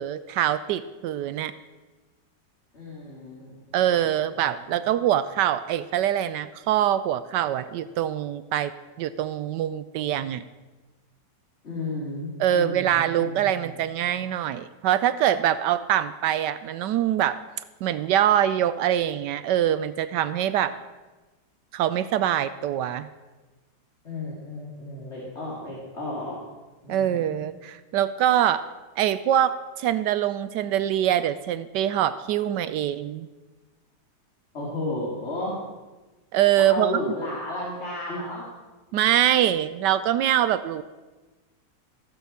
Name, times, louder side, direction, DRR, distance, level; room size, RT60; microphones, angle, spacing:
voice 1, 0.0-1.5 3.7-8.7 9.0-10.4 12.4-17.4 17.8-20.8 21.7-23.1 26.9-28.6 29.0-33.3 36.3-36.9 38.9-40.8, right 11 dB, 80° right, 14 dB, 1.2 m, -24 dB
voice 2, 2.7-4.5 11.6-14.1 24.0-26.4 26.8-27.4 34.5-35.6 36.6-38.5, left 2 dB, 40° left, -4 dB, 2.8 m, -34 dB
16.0 x 6.9 x 7.4 m, 1.2 s
omnidirectional pair, 1.9 m